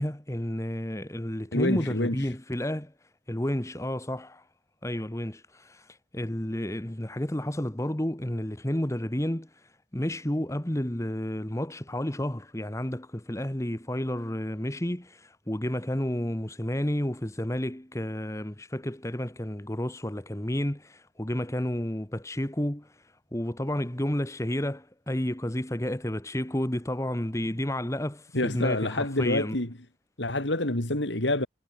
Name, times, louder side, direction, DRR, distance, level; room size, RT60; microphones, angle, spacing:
voice 1, 0.0-2.9 3.3-4.4 4.8-5.9 6.1-9.5 9.9-22.9 23.3-29.6, left 1 dB, 15° left, 1.5 m, -31 dB
voice 2, 1.5-2.3 28.3-29.8 30.2-31.5, left 1 dB, 85° left, 3.6 m, -27 dB
head